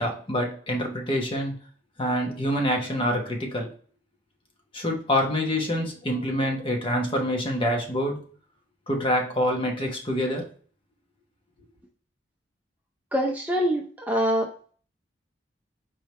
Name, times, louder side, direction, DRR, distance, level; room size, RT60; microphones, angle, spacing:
voice 1, 0.0-1.5 2.0-3.7 4.7-8.3 8.9-10.4, equal, 30° left, 1.0 m, -26 dB
voice 2, 13.1-14.5, equal, 10° right, 0.5 m, -24 dB
4.6 x 3.2 x 3.1 m
head